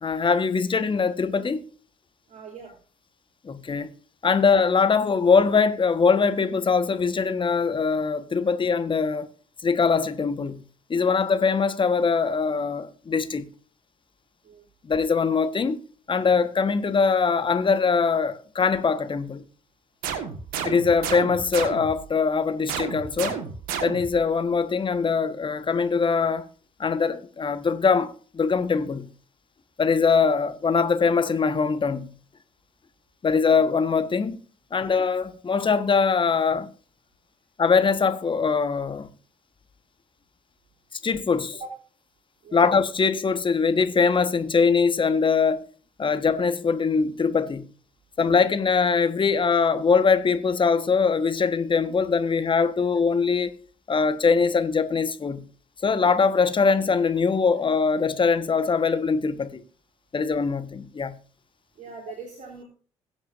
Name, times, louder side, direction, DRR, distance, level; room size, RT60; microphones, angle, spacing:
voice 1, 0.0-1.6 3.4-3.9 4.2-9.3 9.6-10.6 10.9-13.5 14.8-15.8 16.1-19.4 20.6-23.4 23.8-26.5 26.8-29.1 29.8-32.1 33.2-34.4 34.7-36.7 37.6-39.1 41.0-41.6 42.5-45.6 46.0-47.7 48.2-53.5 53.9-55.4 55.8-59.6 60.1-61.2, left 5 dB, 30° left, 1.4 m, -22 dB
voice 2, 2.3-2.7 14.4-14.6 41.6-41.8 42.4-42.6 61.8-62.6, right 5 dB, 45° right, 3.5 m, -41 dB
sound 1, 20.0-22.1 22.7-24.3, right 7 dB, 65° right, 1.7 m, -32 dB
21.5 x 8.0 x 2.6 m
figure-of-eight pair, 45°, 16 cm